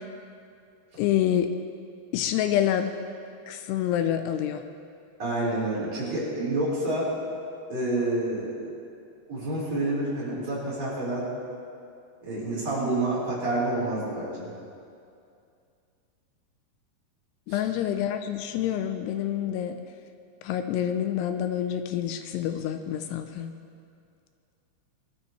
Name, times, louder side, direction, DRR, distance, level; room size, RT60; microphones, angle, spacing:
voice 1, 1.0-1.5 2.1-2.9 3.5-4.6 17.5-19.8 20.4-23.5, left 10 dB, 85° left, 8 dB, 2.6 m, -27 dB
voice 2, 5.2-7.1 7.7-8.6 9.3-11.3 12.2-14.5 17.5-17.6, right 2 dB, 40° right, -7 dB, 5.0 m, -28 dB
21.5 x 12.5 x 3.2 m, 2.4 s
omnidirectional pair, 4.8 m